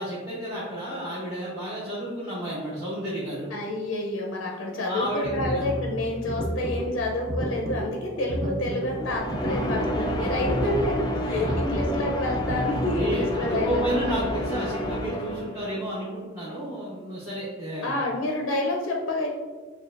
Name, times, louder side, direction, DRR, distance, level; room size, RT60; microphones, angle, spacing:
voice 1, 0.0-3.5 4.5-4.6 4.8-5.7 10.2-10.3 11.3-11.5 12.9-18.0, equal, 15° right, -9 dB, 0.8 m, -31 dB
voice 2, 3.5-14.0 17.8-19.3, left 1 dB, 80° left, 0 dB, 0.6 m, -28 dB
sound 1, 5.0-13.1, right 1 dB, 35° right, 0.5 m, -32 dB
sound 2, 8.9-15.8, equal, 20° left, 0.3 m, -30 dB
6.7 x 2.3 x 2.4 m, 1.3 s
head